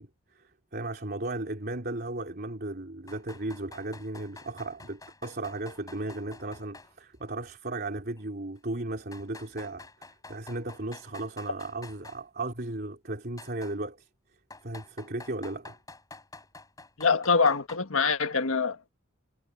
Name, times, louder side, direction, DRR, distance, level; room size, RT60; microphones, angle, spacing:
voice 1, 0.0-14.1 14.6-15.8, right 2 dB, 50° right, 3.2 m, -36 dB
sound 1, 3.1-6.9 7.2-7.3 8.2-8.3 9.1-12.2 13.4-13.8 14.5-17.8, left 3 dB, 15° left, 8.0 m, -49 dB
voice 2, 17.0-18.9, left 5 dB, 90° left, 1.7 m, -24 dB
head